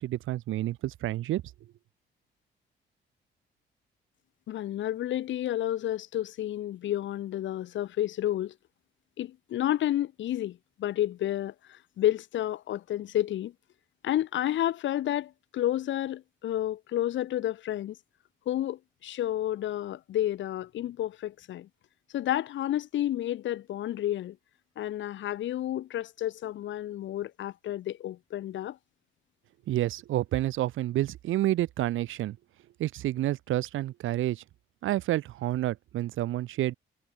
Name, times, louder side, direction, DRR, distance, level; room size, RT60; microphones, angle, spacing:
voice 1, 0.0-1.4 29.7-32.4 32.8-34.4 34.8-36.7, right 14 dB, 80° right, 1.7 m, -29 dB
voice 2, 4.5-8.5 9.2-13.5 14.0-18.0 18.5-21.7 22.1-24.4 24.8-28.8, left 12 dB, 75° left, 1.3 m, -30 dB
cardioid pair, 90°, 20 cm